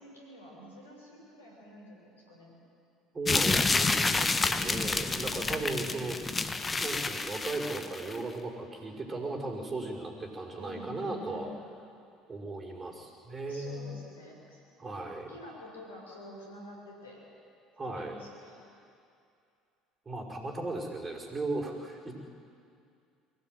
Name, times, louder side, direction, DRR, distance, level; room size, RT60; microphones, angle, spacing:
voice 1, 0.0-2.5 5.0-5.9 10.6-11.6 13.4-14.6 15.3-17.2 17.8-18.6, left 1 dB, 85° left, -2 dB, 6.3 m, -48 dB
voice 2, 3.1-6.2 6.4-11.5 12.3-13.9 14.8-15.3 17.8-18.1 20.1-22.1, right 2 dB, 25° right, -1 dB, 5.5 m, -36 dB
sound 1, 3.3-8.2, left 3 dB, 25° left, 1.3 m, -29 dB
23.0 x 16.5 x 9.4 m, 2.5 s
figure-of-eight pair, 60°, 0 cm